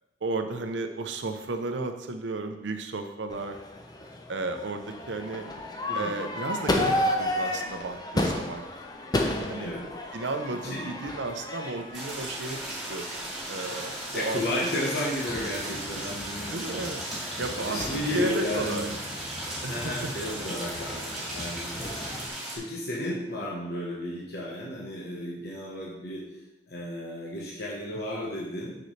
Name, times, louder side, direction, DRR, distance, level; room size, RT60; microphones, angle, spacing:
voice 1, 0.2-3.6 4.3-5.5 5.9-8.7 9.5-9.7 10.1-12.6 12.9-14.6 16.5-17.0 17.4-18.9 19.6-20.1, right 3 dB, 85° right, 7 dB, 0.7 m, -33 dB
Crowd / Fireworks, 3.3-22.3, left 1 dB, 20° left, 0.6 m, -34 dB
voice 2, 9.2-9.8 10.7-10.9 14.1-16.7 17.6-18.8 19.7-26.2 26.7-28.8, left 1 dB, 60° left, -4 dB, 1.2 m, -33 dB
sound 1, 11.9-22.6, right 1 dB, ahead, 2.2 m, -36 dB
6.7 x 6.2 x 3.2 m, 0.95 s
head